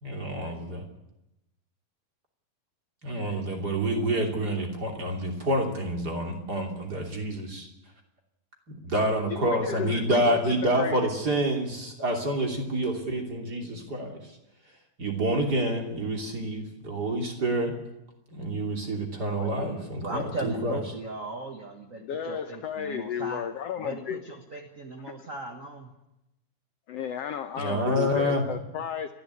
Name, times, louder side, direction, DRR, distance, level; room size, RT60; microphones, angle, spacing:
voice 1, 0.0-0.8 3.0-7.7 8.7-14.2 15.0-17.7 18.3-20.8 27.6-28.4, right 1 dB, 30° right, 2 dB, 3.2 m, -28 dB
voice 2, 9.0-11.0 22.0-24.2 25.1-25.2 26.9-29.2, left 8 dB, 75° left, 8 dB, 1.5 m, -33 dB
voice 3, 19.3-23.4 23.8-25.9, right 3 dB, 45° right, 3 dB, 1.0 m, -38 dB
29.0 x 12.5 x 8.3 m, 0.92 s
omnidirectional pair, 3.9 m